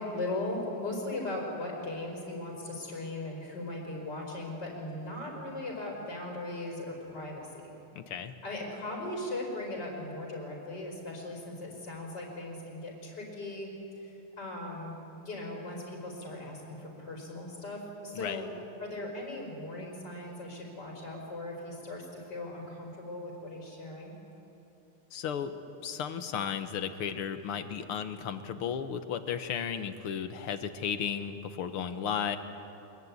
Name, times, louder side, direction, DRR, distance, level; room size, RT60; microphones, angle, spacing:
voice 1, 0.0-7.6 8.4-13.7 14.0-14.9 15.2-18.5 18.8-24.1, left 2 dB, 50° left, -2 dB, 5.4 m, -38 dB
voice 2, 8.0-8.3 18.2-18.5 25.1-32.4, left 7 dB, 80° left, 9 dB, 2.1 m, -34 dB
24.5 x 22.5 x 9.6 m, 2.9 s
omnidirectional pair, 2.4 m